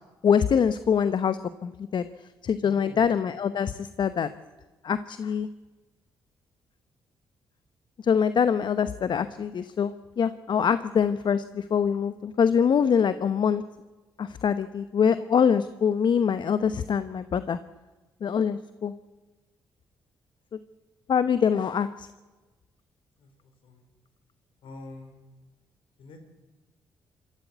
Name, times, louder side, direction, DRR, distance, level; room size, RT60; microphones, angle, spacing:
voice 1, 0.2-2.0 2.4-4.3 4.8-5.5 8.0-13.6 14.2-17.6 18.2-18.9 21.1-22.1, left 7 dB, 55° left, 13 dB, 0.9 m, -24 dB
voice 2, 2.6-3.2 23.2-23.8 24.6-25.2 26.0-26.2, left 2 dB, 70° left, 5 dB, 4.9 m, -45 dB
26.0 x 14.0 x 8.3 m, 1.2 s
supercardioid pair, 55°, 9 cm